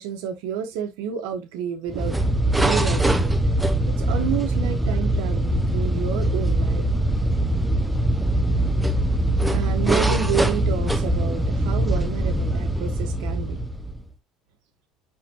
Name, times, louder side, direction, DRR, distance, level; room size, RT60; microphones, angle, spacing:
voice 1, 0.0-2.2 2.6-3.3 4.0-6.9 9.5-13.6, right 8 dB, 85° right, 1.2 m, -30 dB
sound 1, 1.9-14.1, right 1 dB, 5° right, 0.7 m, -22 dB
10.0 x 3.6 x 2.9 m
cardioid pair, 145°, 0 cm